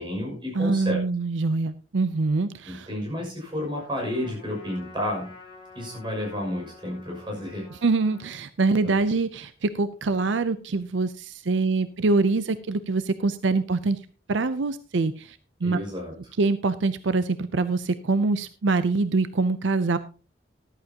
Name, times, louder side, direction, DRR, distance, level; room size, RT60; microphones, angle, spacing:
voice 1, 0.0-1.0 2.7-5.3 5.7-7.7 8.8-9.0 15.6-16.3, left 1 dB, 25° right, 0 dB, 6.2 m, -31 dB
voice 2, 0.6-2.9 7.8-14.0 14.3-15.8 16.4-20.0, right 3 dB, 75° right, 13 dB, 0.6 m, -24 dB
Trumpet, 3.7-8.4, left 3 dB, 30° left, 4.7 m, -49 dB
14.0 x 13.0 x 2.9 m, 0.36 s
head